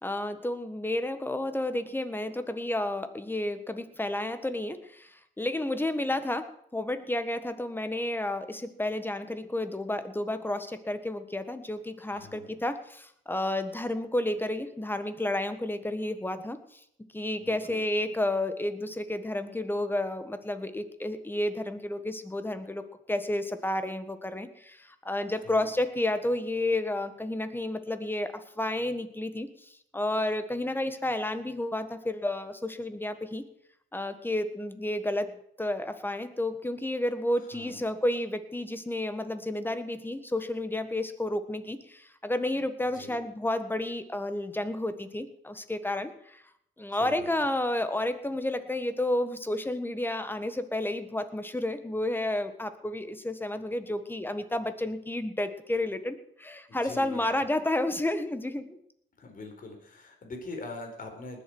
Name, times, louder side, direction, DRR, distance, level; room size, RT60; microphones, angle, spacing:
voice 1, 0.0-16.8 17.1-33.4 33.9-46.4 46.8-58.8, left 1 dB, 10° left, 10 dB, 1.5 m, -31 dB
voice 2, 12.1-12.6 17.4-17.8 25.4-25.7 37.5-37.8 42.9-43.2 47.0-47.3 56.7-57.5 59.2-61.4, left 2 dB, 45° left, 4 dB, 4.2 m, -43 dB
19.5 x 7.8 x 6.2 m, 0.70 s
cardioid pair, 90°, 20 cm